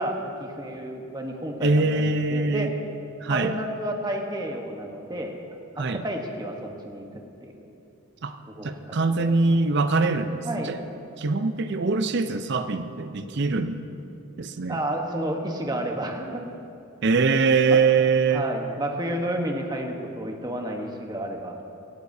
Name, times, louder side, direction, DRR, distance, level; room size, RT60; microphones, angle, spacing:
voice 1, 0.0-2.7 3.3-5.3 5.8-7.0 7.4-7.7 8.5-10.0 10.4-10.7 14.7-16.4 17.7-17.8 18.3-21.6, right 1 dB, 20° right, 2 dB, 1.1 m, -31 dB
voice 2, 1.6-2.7 3.2-3.5 5.8-6.0 8.2-8.4 8.6-10.8 11.2-13.8 14.4-14.8 17.0-18.4, right 4 dB, 55° right, 9 dB, 0.5 m, -23 dB
19.0 x 12.5 x 2.7 m, 2.7 s
head